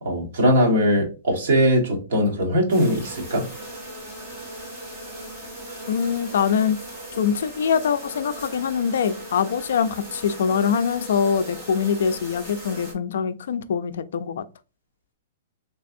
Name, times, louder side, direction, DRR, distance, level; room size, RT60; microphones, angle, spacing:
voice 1, 0.0-3.4, equal, 55° right, 1.4 m, -20 dB
sound 1, 2.7-12.9, right 1 dB, 15° right, 1.1 m, -38 dB
voice 2, 5.9-6.8 7.1-14.4, left 7 dB, 65° left, 0.3 m, -23 dB
3.4 x 3.2 x 2.5 m
hypercardioid pair, 175°, 0 cm